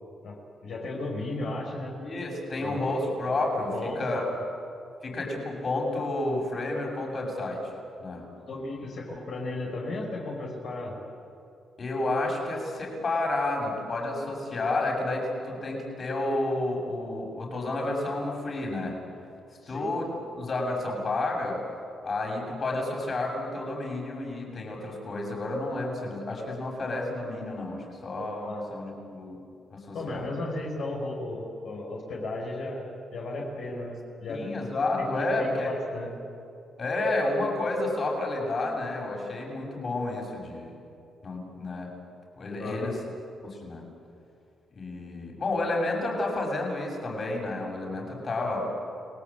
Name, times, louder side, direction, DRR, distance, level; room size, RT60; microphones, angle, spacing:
voice 1, 0.6-1.9 2.6-2.9 3.7-4.0 8.4-11.0 19.6-19.9 28.4-28.6 29.9-32.9 33.1-34.5 35.0-36.1 42.6-42.9, left 2 dB, 70° left, -3 dB, 5.8 m, -35 dB
voice 2, 2.0-4.3 5.0-7.6 8.0-8.2 11.8-19.0 19.5-20.1 20.3-21.6 22.0-29.4 29.7-30.3 34.3-35.7 36.8-40.7 41.2-41.9 42.4-43.0 43.4-43.8 44.7-48.6, left 2 dB, 45° left, 0 dB, 7.3 m, -30 dB
30.0 x 20.0 x 8.6 m, 2.6 s
cardioid pair, 85°, 0 cm